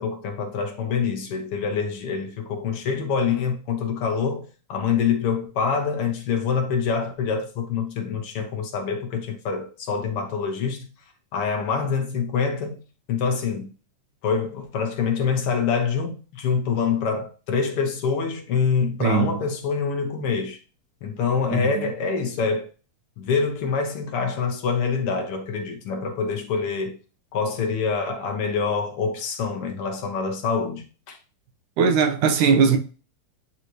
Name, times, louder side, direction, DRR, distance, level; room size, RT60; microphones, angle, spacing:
voice 1, 0.0-10.9 11.3-12.8 13.1-13.7 14.2-20.6 21.0-22.7 23.2-27.0 27.3-31.2, left 5 dB, 65° left, 1.5 m, -25 dB
voice 2, 19.0-19.4 21.5-21.6 31.8-32.8, right 6 dB, 80° right, 2.4 m, -19 dB
9.7 x 4.1 x 3.0 m
omnidirectional pair, 3.6 m